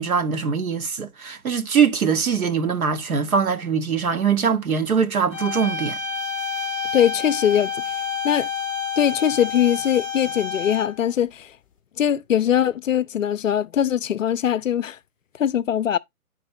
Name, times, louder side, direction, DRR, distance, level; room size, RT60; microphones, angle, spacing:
voice 1, 0.0-6.0, right 6 dB, 70° right, 1.2 m, -22 dB
sound 1, 5.3-11.1, left 5 dB, 25° left, 0.7 m, -29 dB
voice 2, 6.9-7.9 8.2-8.5 9.0-11.5 12.0-15.0 15.4-16.0, left 9 dB, 60° left, 0.5 m, -21 dB
9.5 x 4.4 x 3.0 m
hypercardioid pair, 150°, 44 cm